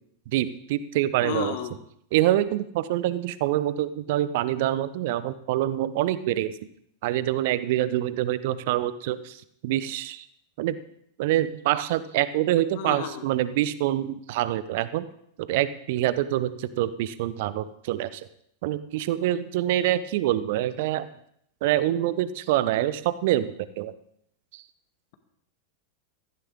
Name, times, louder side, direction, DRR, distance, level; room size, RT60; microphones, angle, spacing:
voice 1, 0.3-1.6 2.1-6.6 7.0-10.3 10.6-10.8 11.2-15.1 15.4-18.2 18.6-21.1 21.6-23.9 24.5-24.6, right 13 dB, 50° right, 15 dB, 0.8 m, -26 dB
voice 2, 1.2-1.7 12.8-13.2, left 7 dB, 50° left, 8 dB, 1.6 m, -31 dB
15.5 x 15.0 x 3.7 m, 0.71 s
figure-of-eight pair, 90°, 0 cm